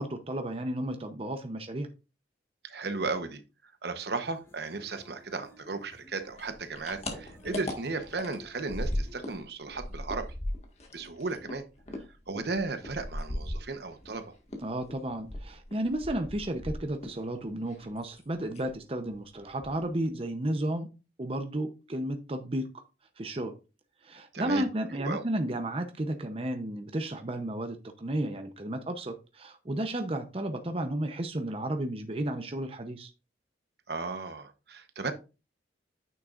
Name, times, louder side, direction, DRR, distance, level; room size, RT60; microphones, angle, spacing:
voice 1, 0.0-1.9 14.6-20.9 21.2-22.7 23.2-23.5 24.0-33.1, right 1 dB, 30° right, 0.7 m, -33 dB
voice 2, 2.6-10.3 10.9-11.6 12.3-14.3 24.3-24.6 25.0-25.2 33.9-35.1, right 3 dB, 60° right, 0.9 m, -35 dB
sound 1, 4.2-9.5, left 2 dB, 15° left, 1.4 m, -56 dB
sound 2, 6.3-9.4 9.7-14.2 14.5-17.2 17.5-18.2 18.5-18.8 19.1-19.2 19.5-20.0, left 1 dB, 35° left, 1.7 m, -37 dB
9.1 x 6.5 x 2.5 m
head